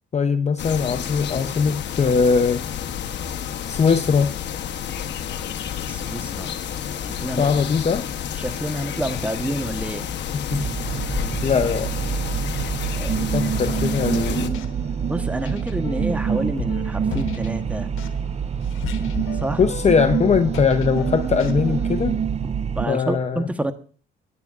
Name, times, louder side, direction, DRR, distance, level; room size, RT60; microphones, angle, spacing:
voice 1, 0.1-2.6 3.7-4.3 7.2-8.0 10.5-10.7 11.4-11.9 13.3-14.6 19.6-22.2 22.9-23.5, left 6 dB, 35° left, 8 dB, 0.7 m, -21 dB
sound 1, 0.6-14.5, left 9 dB, 65° left, 1.0 m, -30 dB
voice 2, 5.9-6.5 7.0-7.5 8.4-10.1 12.8-13.2 15.1-17.9 19.3-19.6 22.4-23.7, right 1 dB, 5° right, 8 dB, 1.1 m, -29 dB
sound 2, 10.5-22.9, right 7 dB, 35° right, 0.4 m, -26 dB
sound 3, 13.6-21.9, left 8 dB, 85° left, 1.2 m, -38 dB
16.5 x 10.5 x 2.5 m, 0.41 s
cardioid pair, 90°, 20 cm